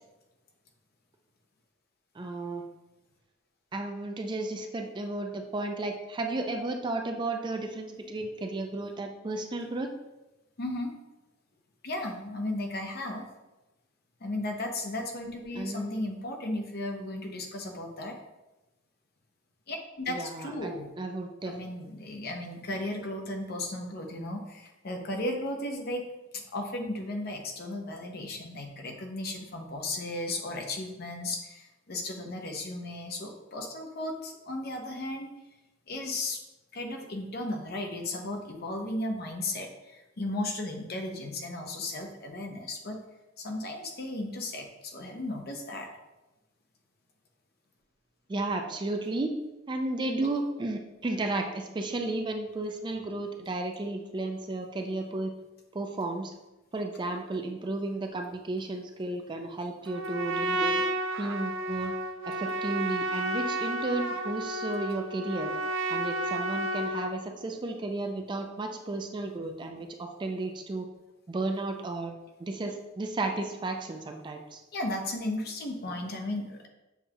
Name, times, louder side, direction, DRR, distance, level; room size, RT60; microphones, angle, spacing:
voice 1, 2.2-2.6 3.7-9.9 15.5-16.0 20.1-21.6 48.3-49.3 49.7-55.3 55.7-56.3 56.7-60.8 61.2-61.9 62.3-65.5 65.9-70.9 71.3-72.1 72.4-74.6, right 2 dB, 25° right, 4 dB, 0.3 m, -33 dB
voice 2, 10.6-11.0 11.8-13.3 14.2-18.2 19.7-20.9 21.4-26.0 26.3-35.3 35.9-36.4 36.7-43.0 43.4-45.9 74.7-76.7, left 1 dB, 55° left, 2 dB, 0.7 m, -35 dB
Trumpet, 59.9-67.2, right 1 dB, 85° right, 0.4 m, -31 dB
7.0 x 2.3 x 2.8 m, 1.0 s
head